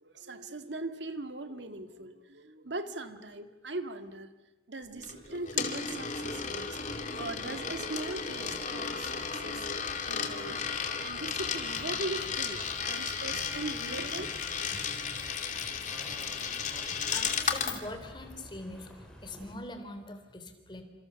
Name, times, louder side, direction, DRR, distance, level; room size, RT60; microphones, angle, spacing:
voice 1, 0.0-4.3 4.7-6.8 7.2-9.7 10.1-10.7 11.0-14.4 14.8-14.9, right 2 dB, 85° right, 8 dB, 1.9 m, -40 dB
Coin (dropping), 5.0-17.8, left 6 dB, 45° left, 2.6 m, -34 dB
sound 1, 6.1-19.5, equal, 5° left, 4.9 m, -50 dB
Acoustic guitar / Strum, 10.4-17.6, right 1 dB, 45° right, 5.2 m, -53 dB
voice 2, 17.1-20.8, left 1 dB, 25° left, 7 dB, 3.5 m, -43 dB
29.0 x 27.5 x 7.1 m, 1.1 s
head